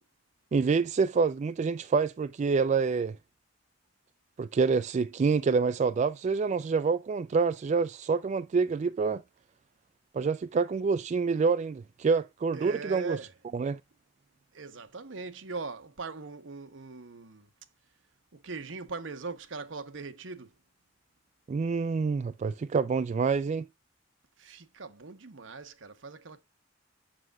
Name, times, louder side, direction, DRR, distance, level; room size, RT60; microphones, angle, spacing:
voice 1, 0.5-3.2 4.4-9.2 10.1-13.2 13.5-13.8 21.5-23.7, right 5 dB, 40° right, 0.3 m, -27 dB
voice 2, 12.5-13.3 14.5-17.5 18.3-20.5 24.4-26.4, right 4 dB, 80° right, 1.0 m, -41 dB
7.7 x 6.2 x 2.3 m
head